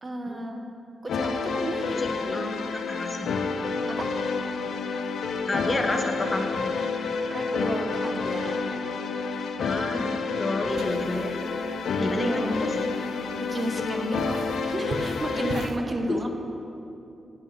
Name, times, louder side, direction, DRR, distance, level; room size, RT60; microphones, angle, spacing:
voice 1, 0.0-0.7 1.0-2.5 3.9-4.1 7.3-8.6 12.0-12.6 13.4-16.4, right 1 dB, 30° right, 3 dB, 1.0 m, -32 dB
sound 1, 1.1-15.7, left 4 dB, 85° left, 0.5 m, -29 dB
voice 2, 2.0-3.3 5.5-6.7 9.6-11.4 12.0-12.5 16.1-16.2, left 2 dB, 30° left, 5 dB, 0.9 m, -30 dB
sound 2, 10.7-15.8, right 3 dB, 70° right, 0.6 m, -41 dB
8.3 x 5.3 x 6.9 m, 2.8 s
cardioid pair, 75°, 0 cm